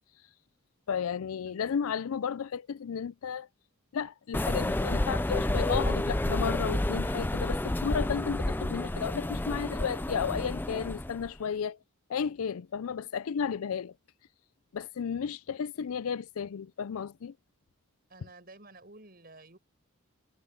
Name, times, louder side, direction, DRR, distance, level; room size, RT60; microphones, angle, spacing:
voice 1, 0.9-3.5 3.9-11.8 12.1-13.9 14.7-17.3, left 7 dB, 75° left, 0.4 m, -33 dB
voice 2, 1.5-1.8 15.8-16.0 18.1-19.6, right 2 dB, 45° right, 6.5 m, -53 dB
sound 1, 4.3-11.3, left 1 dB, 10° left, 0.3 m, -30 dB
head